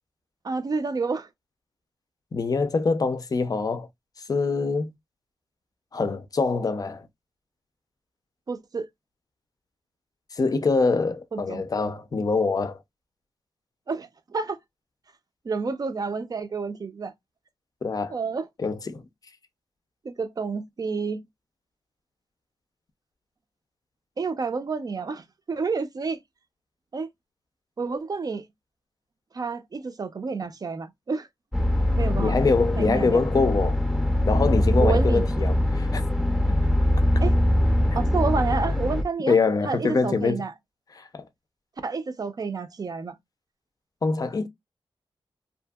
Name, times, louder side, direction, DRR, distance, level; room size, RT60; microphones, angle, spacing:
voice 1, 0.4-1.3 8.5-8.9 11.3-11.6 13.9-14.6 15.4-17.1 18.1-18.5 20.0-21.2 24.2-26.2 26.9-27.1 27.8-28.4 29.3-31.3 32.0-32.3 32.8-33.2 34.8-35.2 37.2-37.3 37.9-39.4 39.6-40.5 41.8-43.1, right 4 dB, 40° right, 0.5 m, -29 dB
voice 2, 2.3-3.9 4.3-4.9 5.9-7.1 10.3-12.8 17.8-18.1 18.6-19.0 32.2-33.8 34.3-36.0 39.3-40.4 40.9-41.2 44.0-44.5, left 4 dB, 40° left, 0.5 m, -24 dB
sound 1, 31.5-39.0, left 1 dB, ahead, 0.7 m, -22 dB
2.7 x 2.6 x 2.3 m
wide cardioid pair, 95°, 9 cm